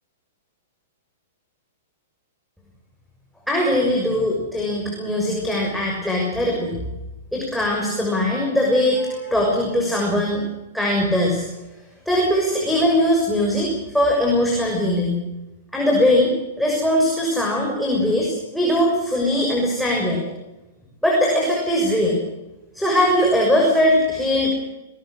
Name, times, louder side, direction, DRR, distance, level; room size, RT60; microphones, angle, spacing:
voice 1, 3.5-6.8 7.3-10.4 10.7-11.4 12.0-15.2 15.7-16.3 16.6-20.2 21.0-22.2 22.7-24.5, left 1 dB, ahead, -2 dB, 6.5 m, -20 dB
24.5 x 19.5 x 6.6 m, 1.0 s
hypercardioid pair, 125°, 0 cm